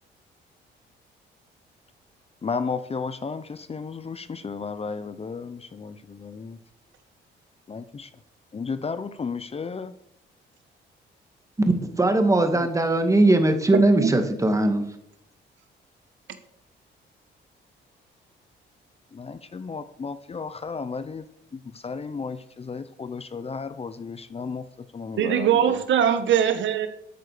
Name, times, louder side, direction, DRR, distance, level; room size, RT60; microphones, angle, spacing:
voice 1, 2.4-6.6 7.7-8.1 8.5-10.0 12.3-12.5 19.1-21.3 21.5-25.8, left 5 dB, 30° left, 13 dB, 0.8 m, -34 dB
voice 2, 11.8-14.9, right 2 dB, 15° right, 6 dB, 2.1 m, -20 dB
voice 3, 25.2-26.9, right 9 dB, 70° right, 10 dB, 1.3 m, -21 dB
12.0 x 8.5 x 6.8 m, 0.75 s
cardioid pair, 90°, 20 cm